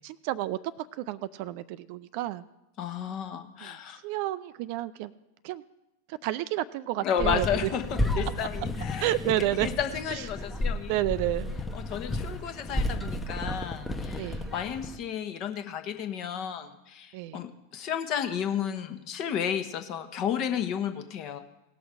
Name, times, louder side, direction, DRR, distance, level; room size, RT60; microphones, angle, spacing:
voice 1, 0.0-2.4 3.6-3.7 4.0-5.1 5.4-5.6 6.1-7.7 9.0-9.7 10.1-10.2 10.9-11.6 14.2-14.5 17.1-17.4, right 14 dB, 45° right, 15 dB, 0.4 m, -30 dB
voice 2, 2.8-4.0 7.0-9.1 9.6-10.9 11.7-21.4, left 8 dB, 40° left, 8 dB, 1.1 m, -32 dB
sound 1, 7.2-15.0, left 1 dB, 5° left, 0.9 m, -32 dB
18.0 x 6.2 x 4.9 m, 0.95 s
figure-of-eight pair, 90°, 0 cm